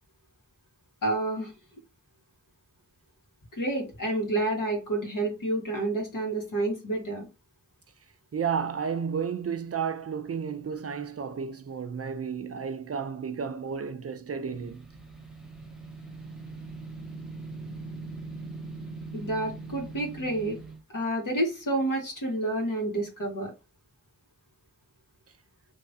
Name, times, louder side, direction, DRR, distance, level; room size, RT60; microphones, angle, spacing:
voice 1, 1.0-1.5 3.5-7.3 19.1-20.6 20.9-23.5, right 2 dB, 75° left, 1.6 m, -29 dB
voice 2, 8.3-14.9, right 6 dB, 50° right, 0.5 m, -32 dB
sound 1, 14.4-20.8, right 3 dB, ahead, 0.8 m, -41 dB
3.6 x 2.9 x 2.7 m
wide cardioid pair, 80°, 32 cm